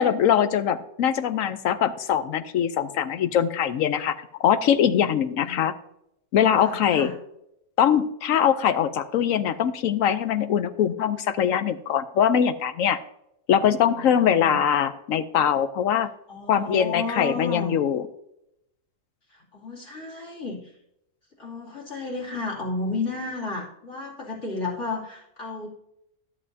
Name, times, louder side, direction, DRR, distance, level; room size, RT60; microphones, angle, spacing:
voice 1, 0.0-5.7 6.3-7.1 7.8-13.0 13.5-16.1 16.5-18.0, left 9 dB, 70° left, 10 dB, 1.0 m, -22 dB
voice 2, 5.3-5.7 6.6-7.1 13.7-14.6 16.3-17.8 19.3-20.7 21.4-25.7, left 3 dB, 50° left, -5 dB, 3.0 m, -33 dB
13.0 x 7.6 x 2.7 m, 0.79 s
omnidirectional pair, 1.6 m